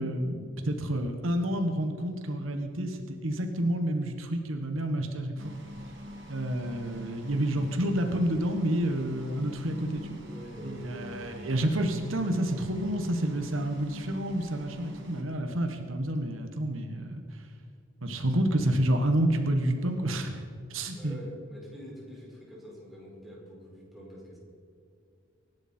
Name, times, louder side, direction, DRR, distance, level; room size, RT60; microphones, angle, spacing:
voice 1, 0.0-5.5 6.3-10.2 10.6-17.2 18.0-20.4 20.7-21.2, right 1 dB, 90° right, 6 dB, 1.5 m, -29 dB
sound 1, 5.4-15.2, equal, 65° right, 2.4 m, -45 dB
voice 2, 10.2-11.2 20.9-24.4, equal, ahead, -5 dB, 5.1 m, -45 dB
24.5 x 11.5 x 4.5 m, 2.3 s
head